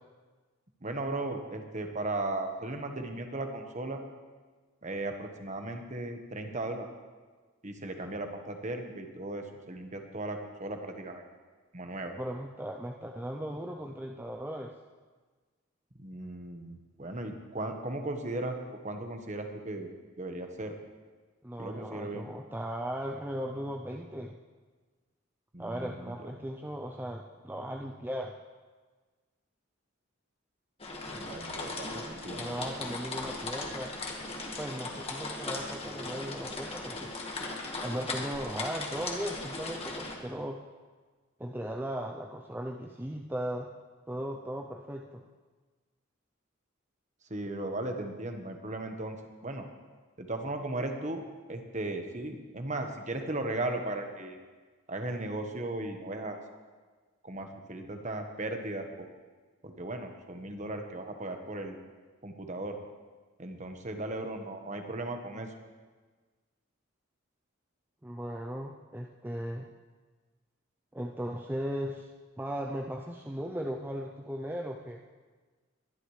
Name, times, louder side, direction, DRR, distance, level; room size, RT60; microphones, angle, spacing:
voice 1, 0.8-4.0 4.8-6.9 7.6-11.2 11.7-12.2 16.0-18.6 18.8-19.9 20.2-20.7 21.6-22.3 25.5-26.3 31.1-32.5 47.3-49.2 49.4-49.7 50.2-51.2 51.5-54.4 54.9-56.4 57.2-59.1 59.6-61.8 62.2-62.8 63.4-65.5, right 2 dB, 35° right, 5 dB, 1.2 m, -36 dB
voice 2, 12.2-14.7 21.4-24.4 25.6-28.3 31.9-32.1 32.3-33.9 34.6-37.1 37.8-40.6 41.4-43.7 44.1-45.2 68.0-69.7 70.9-72.1 72.4-75.0, equal, 10° right, 1 dB, 0.5 m, -37 dB
sound 1, 30.8-40.2, left 2 dB, 30° left, 1.5 m, -38 dB
21.5 x 11.5 x 3.2 m, 1.4 s
head